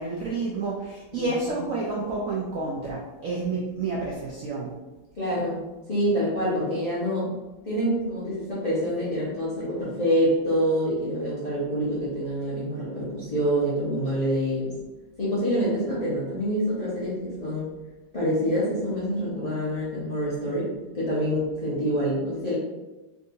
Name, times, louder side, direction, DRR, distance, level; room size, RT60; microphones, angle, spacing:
voice 1, 0.0-4.7, right 3 dB, 75° right, -4 dB, 0.7 m, -29 dB
voice 2, 1.1-1.7 5.2-5.6 5.9-7.3 7.6-14.7 15.2-17.7 18.1-20.7 20.9-22.6, equal, 45° left, -10 dB, 0.5 m, -26 dB
3.6 x 2.7 x 2.6 m, 1.1 s
omnidirectional pair, 2.0 m